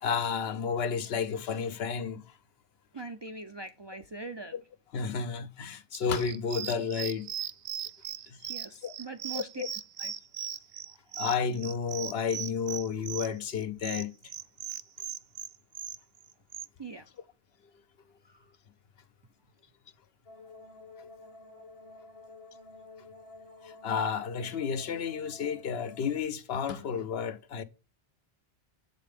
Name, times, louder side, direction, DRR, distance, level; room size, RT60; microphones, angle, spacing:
voice 1, 0.0-2.2 4.5-4.6 4.9-7.3 8.3-8.5 8.8-8.9 9.3-9.7 11.2-14.1 23.6-27.6, left 6 dB, 75° left, 0.9 m, -31 dB
voice 2, 2.9-4.5 8.5-9.6 10.0-10.1 10.9-11.1 16.8-17.1 18.2-18.5, right 3 dB, 40° right, 0.4 m, -42 dB
sound 1, 5.9-16.7, right 10 dB, 70° right, 0.7 m, -38 dB
sound 2, 20.3-26.2, left 3 dB, 35° left, 0.9 m, -51 dB
7.4 x 5.2 x 3.5 m
omnidirectional pair, 1.1 m